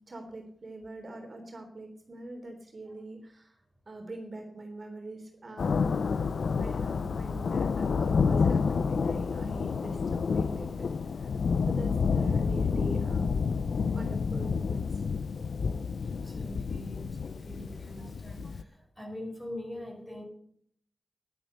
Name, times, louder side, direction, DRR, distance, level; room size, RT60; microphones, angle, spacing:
voice 1, 0.0-3.6 3.8-5.9 6.5-11.3 11.6-13.5 13.9-15.0, right 2 dB, 40° right, 2 dB, 3.4 m, -44 dB
Thunder, 5.6-18.6, left 5 dB, 80° left, 0.6 m, -29 dB
voice 2, 16.0-20.2, left 1 dB, 5° left, 1 dB, 4.9 m, -43 dB
12.0 x 11.5 x 6.6 m, 0.65 s
wide cardioid pair, 110°, 0 cm